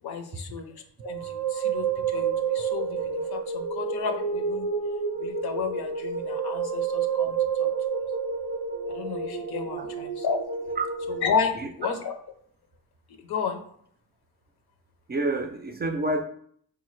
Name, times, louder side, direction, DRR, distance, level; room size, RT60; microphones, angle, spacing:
voice 1, 0.0-4.7 5.2-7.7 8.9-10.7 11.1-12.1 13.1-13.6, left 5 dB, 75° left, 5 dB, 0.6 m, -32 dB
sound 1, 1.0-11.3, right 6 dB, 90° right, 0.6 m, -29 dB
voice 2, 15.1-16.2, right 2 dB, 25° right, 5 dB, 0.4 m, -27 dB
3.8 x 2.3 x 3.1 m, 0.64 s
cardioid pair, 65°, 39 cm